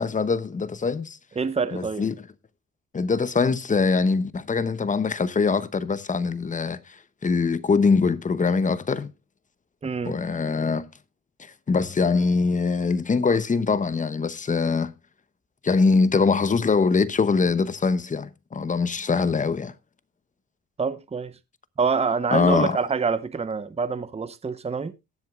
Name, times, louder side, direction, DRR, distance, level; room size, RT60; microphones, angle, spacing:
voice 1, 0.0-1.2 1.7-2.2 2.9-9.1 10.0-10.9 11.4-14.9 15.6-19.7 22.3-22.8, left 4 dB, 25° left, 0.8 m, -23 dB
voice 2, 1.4-2.0 9.8-10.2 20.8-21.4 21.8-24.9, right 5 dB, 20° right, 0.8 m, -26 dB
19.0 x 7.8 x 2.4 m
cardioid pair, 90°, 30 cm